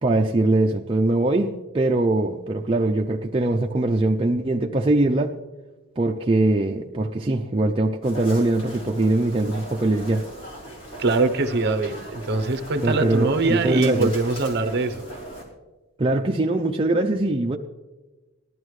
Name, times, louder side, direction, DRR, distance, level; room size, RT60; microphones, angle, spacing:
voice 1, 0.0-5.3 6.0-10.2 12.8-14.1 16.0-17.6, right 2 dB, 25° right, 1 dB, 0.4 m, -22 dB
sound 1, 8.0-15.4, right 1 dB, 60° left, 3.8 m, -39 dB
voice 2, 11.0-15.0, right 3 dB, 50° right, 8 dB, 0.8 m, -23 dB
19.0 x 12.5 x 3.2 m, 1.2 s
head